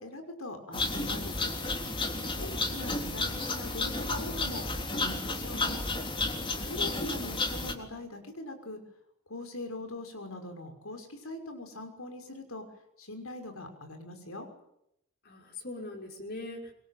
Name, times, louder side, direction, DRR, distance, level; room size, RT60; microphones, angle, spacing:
voice 1, 0.0-1.5 2.4-5.8 6.7-8.8 9.3-12.6 13.0-14.5, left 2 dB, 80° left, 6 dB, 6.0 m, -42 dB
sound 1, 0.7-7.7, left 2 dB, 25° left, 3.6 m, -32 dB
voice 2, 2.2-2.6 6.5-6.8 15.2-16.7, left 2 dB, 50° left, 2 dB, 6.0 m, -42 dB
26.0 x 23.0 x 9.4 m, 0.79 s
head